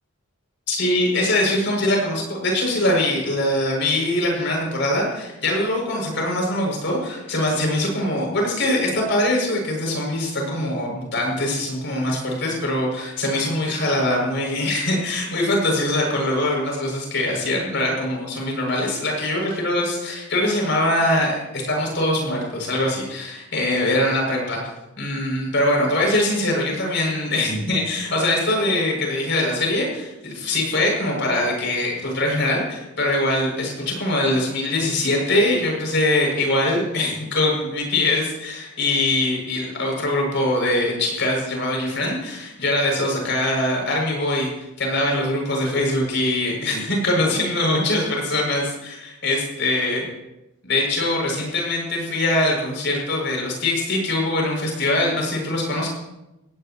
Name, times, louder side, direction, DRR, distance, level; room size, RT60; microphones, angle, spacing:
voice 1, 0.7-24.6 25.0-44.5 44.8-50.0 50.6-55.9, left 1 dB, 50° left, -1 dB, 7.2 m, -22 dB
21.0 x 18.0 x 3.2 m, 0.96 s
head